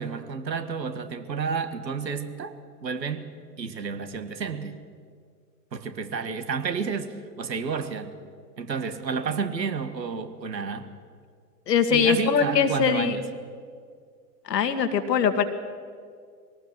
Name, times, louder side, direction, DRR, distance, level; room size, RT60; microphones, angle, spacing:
voice 1, 0.0-2.5 2.8-3.3 3.6-4.8 5.7-8.1 8.6-10.9 11.9-13.2, right 5 dB, 80° right, 10 dB, 1.7 m, -31 dB
voice 2, 11.7-13.2 14.5-15.4, left 7 dB, 75° left, 8 dB, 2.0 m, -22 dB
21.5 x 18.5 x 7.7 m, 2.1 s
figure-of-eight pair, 90°, 50 cm